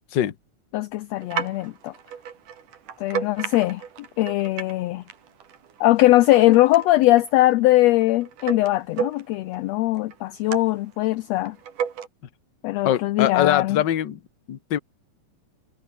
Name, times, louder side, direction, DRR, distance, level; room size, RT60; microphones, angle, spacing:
voice 1, 0.7-1.9 3.0-3.8 4.2-5.0 5.8-11.6 12.6-13.8, left 17 dB, 75° left, 1.6 m, -20 dB
sound 1, 1.2-4.8 5.1-9.6 10.0-10.9 11.3-12.1, right 8 dB, 85° right, 4.1 m, -34 dB
voice 2, 12.8-14.2 14.5-14.8, left 11 dB, 50° left, 1.5 m, -22 dB
omnidirectional pair, 3.5 m